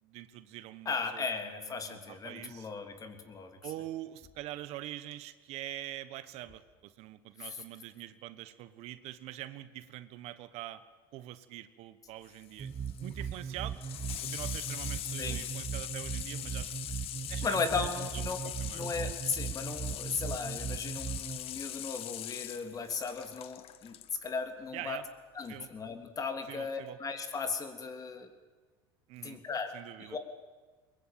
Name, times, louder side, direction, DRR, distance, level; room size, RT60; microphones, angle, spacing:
voice 1, 0.0-2.7 3.6-10.8 11.1-12.7 13.0-13.8 14.2-16.7 17.3-17.8 18.1-18.2 18.6-18.9 24.7-25.1 25.5-25.7 26.5-27.0 29.1-29.4 29.7-30.2, right 14 dB, 60° right, 13 dB, 1.4 m, -44 dB
voice 2, 0.8-3.6 7.4-7.5 15.2-15.4 17.4-25.0 25.3-28.3 29.2-30.2, left 4 dB, 30° left, 6 dB, 3.3 m, -36 dB
Water tap faucet / Sink (filling or washing), 12.2-24.1 25.4-25.5, left 13 dB, 50° left, 1.2 m, -41 dB
sound 1, 12.6-21.4, right 7 dB, 30° right, 1.8 m, -38 dB
21.5 x 21.5 x 9.1 m, 1.3 s
supercardioid pair, 105°, 12 cm